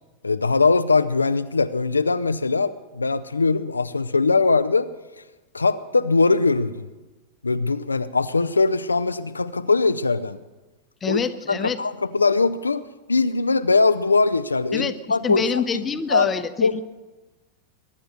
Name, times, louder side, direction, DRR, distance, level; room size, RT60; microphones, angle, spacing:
voice 1, 0.2-4.9 5.5-6.8 7.4-10.4 11.0-11.2 11.5-12.8 13.1-15.6 16.1-16.3 16.6-16.8, left 3 dB, 80° left, 11 dB, 0.5 m, -21 dB
voice 2, 11.0-11.8 14.7-14.9 15.2-16.8, left 6 dB, 20° left, 11 dB, 0.9 m, -26 dB
22.5 x 10.0 x 6.5 m, 1.2 s
figure-of-eight pair, 90°, 0 cm